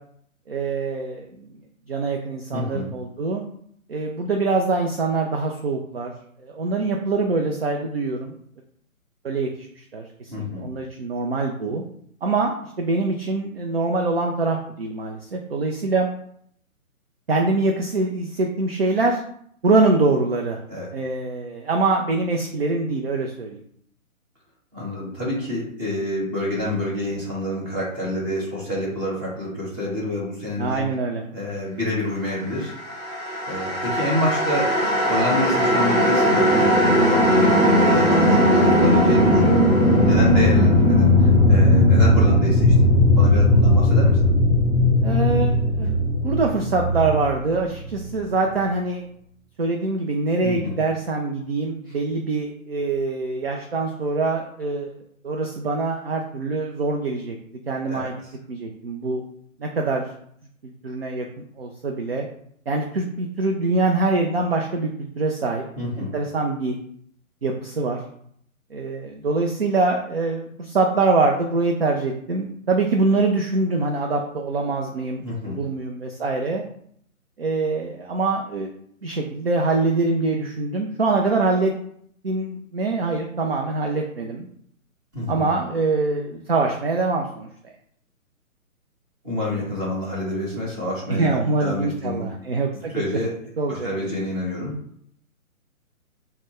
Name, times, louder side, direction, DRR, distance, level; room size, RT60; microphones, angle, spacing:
voice 1, 0.5-1.5 1.9-3.4 3.9-6.1 6.4-8.3 9.2-10.3 10.6-11.8 12.2-16.1 17.3-19.2 19.6-20.6 20.9-23.6 30.6-31.2 45.0-45.9 46.2-49.1 49.6-55.0 55.2-57.4 57.7-58.1 58.5-59.2 59.6-60.0 60.6-61.3 61.6-62.3 62.7-65.6 66.0-66.8 67.4-68.0 68.7-76.6 77.4-78.7 79.0-81.7 82.2-84.5 85.3-87.5 91.1-92.9 93.6-93.9, right 3 dB, 45° right, 1 dB, 0.4 m, -24 dB
voice 2, 2.5-2.9 10.3-10.7 20.7-20.9 24.7-30.8 31.3-32.7 33.5-39.5 40.0-44.3 50.4-50.7 51.9-52.0 57.9-58.3 65.8-66.1 75.2-75.6 85.1-85.5 89.2-92.3 92.7-93.3 93.7-94.7, left 1 dB, 15° right, -5 dB, 1.1 m, -28 dB
sound 1, 32.8-48.0, left 1 dB, 5° left, 0.8 m, -18 dB
3.9 x 2.1 x 3.0 m, 0.66 s
figure-of-eight pair, 135°, 43 cm